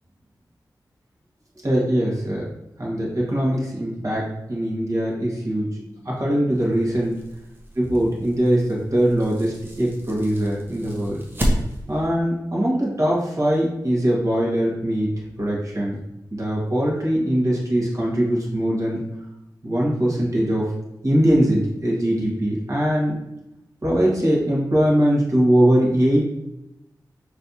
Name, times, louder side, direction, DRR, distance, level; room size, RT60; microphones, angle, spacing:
voice 1, 1.6-2.4 2.8-7.2 7.8-11.2 11.9-15.1 15.4-16.0 16.3-19.0 19.6-20.7 21.0-23.2 23.8-26.3, right 1 dB, 45° right, -4 dB, 1.7 m, -21 dB
sound 1, 6.5-12.1, equal, 30° right, 1.0 m, -31 dB
5.6 x 3.3 x 2.8 m, 0.88 s
cardioid pair, 60°, 8 cm